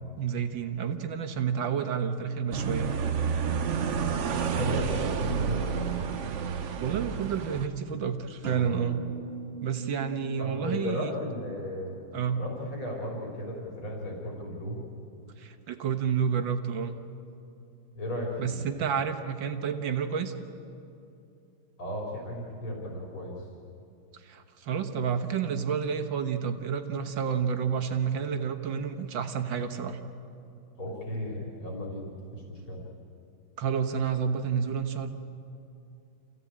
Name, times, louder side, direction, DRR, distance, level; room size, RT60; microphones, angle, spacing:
voice 1, 0.2-2.9 6.8-9.0 9.6-11.1 12.1-12.4 15.4-17.0 18.4-20.3 24.1-30.0 33.6-35.1, right 7 dB, 70° right, 7 dB, 2.0 m, -30 dB
sound 1, 2.5-7.7, right 7 dB, 55° right, 0.8 m, -30 dB
voice 2, 3.9-4.3 4.5-6.1 10.4-12.0 12.3-14.8 18.0-18.6 21.8-23.4 30.8-32.9, left 1 dB, 90° left, -2 dB, 4.3 m, -35 dB
sound 2, 8.4-12.2, right 4 dB, 35° right, 1.8 m, -41 dB
27.5 x 15.5 x 8.7 m, 2.8 s
omnidirectional pair, 2.2 m